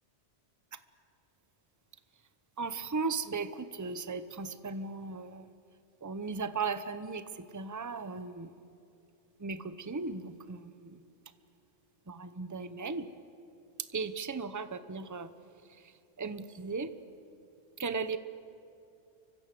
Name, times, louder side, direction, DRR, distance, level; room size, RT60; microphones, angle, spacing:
voice 1, 2.6-5.5 6.0-8.5 9.4-11.0 12.1-13.1 13.9-15.3 15.7-16.9 17.8-18.2, right 4 dB, 15° right, 12 dB, 0.8 m, -37 dB
30.0 x 25.0 x 7.7 m, 2.6 s
omnidirectional pair, 1.2 m